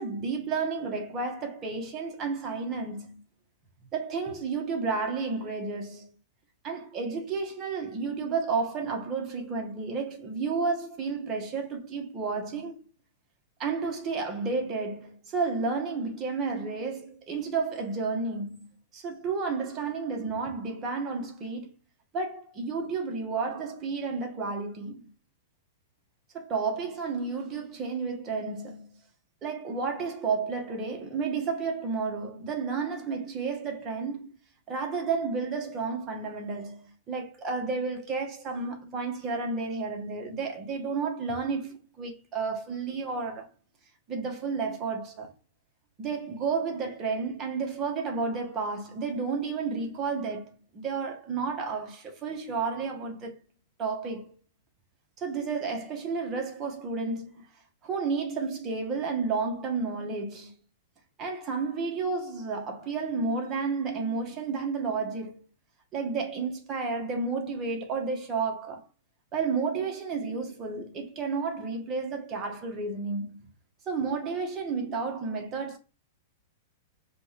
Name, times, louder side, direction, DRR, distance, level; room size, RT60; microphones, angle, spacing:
voice 1, 0.0-3.2 3.9-6.1 6.6-12.8 13.6-18.6 18.9-21.7 22.1-25.1 26.3-29.0 29.4-34.3 34.7-43.5 44.1-45.3 46.0-53.3 53.8-54.3 55.2-57.4 57.8-60.5 61.2-65.4 65.9-68.8 69.3-73.5 73.9-75.8, right 4 dB, 30° right, 1.2 m, -31 dB
4.9 x 2.4 x 3.3 m
hypercardioid pair, 135°, 0 cm